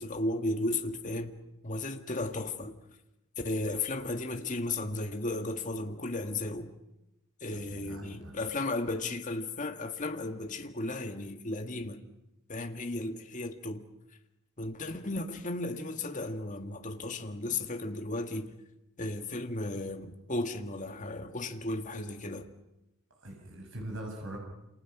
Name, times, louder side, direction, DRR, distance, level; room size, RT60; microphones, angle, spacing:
voice 1, 0.0-1.4 1.6-2.8 3.4-6.7 7.4-12.0 12.5-13.8 14.6-18.5 19.0-22.5, left 2 dB, 35° left, 1.8 m, -35 dB
voice 2, 7.5-8.3 23.2-24.4, right 1 dB, 60° right, 7.0 m, -42 dB
28.5 x 28.5 x 6.1 m
head